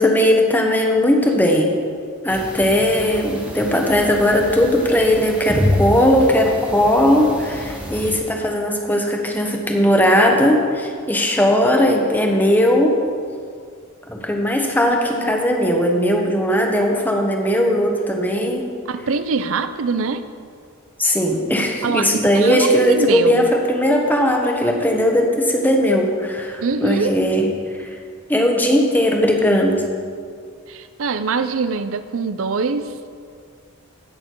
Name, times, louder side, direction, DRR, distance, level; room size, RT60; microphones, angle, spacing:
voice 1, 0.0-1.7 2.2-13.0 14.1-18.7 21.0-27.5 27.8-27.9 28.3-29.7, equal, 10° left, 1 dB, 1.2 m, -18 dB
sound 1, 2.3-8.1, left 1 dB, 5° right, 1.5 m, -27 dB
voice 2, 18.9-20.2 21.8-23.5 26.6-27.1 30.7-32.9, right 4 dB, 70° right, 11 dB, 0.5 m, -23 dB
16.5 x 6.7 x 4.6 m, 2.1 s
head